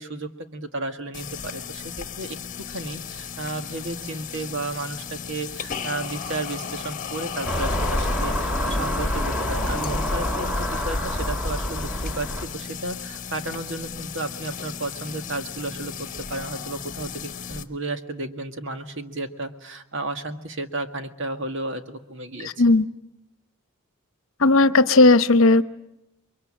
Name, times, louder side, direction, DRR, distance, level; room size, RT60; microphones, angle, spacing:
voice 1, 0.0-22.6, right 2 dB, 60° right, 7 dB, 1.9 m, -33 dB
sound 1, 1.1-17.6, left 7 dB, 35° left, 1.4 m, -35 dB
Car passing by / Engine, 7.4-12.4, left 1 dB, 5° right, 3.3 m, -26 dB
voice 2, 24.4-25.6, left 2 dB, 65° left, 14 dB, 1.0 m, -15 dB
29.5 x 23.0 x 8.8 m, 0.85 s
head